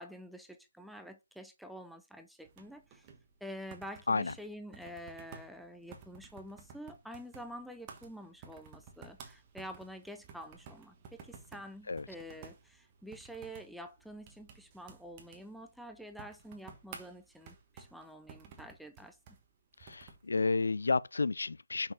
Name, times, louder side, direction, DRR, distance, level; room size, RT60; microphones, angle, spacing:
voice 1, 0.0-3.1 3.4-19.2, equal, ahead, 0.4 m, -48 dB
sound 1, 2.4-20.3, right 6 dB, 20° right, 1.2 m, -55 dB
voice 2, 19.8-21.9, left 3 dB, 75° left, 0.5 m, -31 dB
5.8 x 5.4 x 4.9 m
hypercardioid pair, 170°, 0 cm